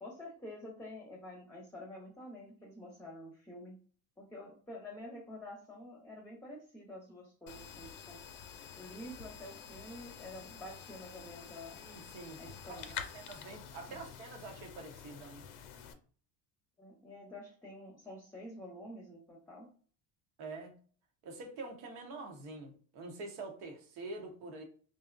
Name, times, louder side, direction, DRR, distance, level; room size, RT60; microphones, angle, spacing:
voice 1, 0.0-3.8 4.2-8.2 8.8-11.8 12.4-13.0 13.9-14.0 16.8-19.7, left 1 dB, 5° left, 0.6 m, -48 dB
sound 1, 7.5-15.9, left 8 dB, 85° left, 0.6 m, -48 dB
voice 2, 11.7-12.4 12.9-15.4 20.4-20.8 21.2-24.6, right 3 dB, 80° right, 0.9 m, -46 dB
2.6 x 2.0 x 2.5 m
supercardioid pair, 90°, 44 cm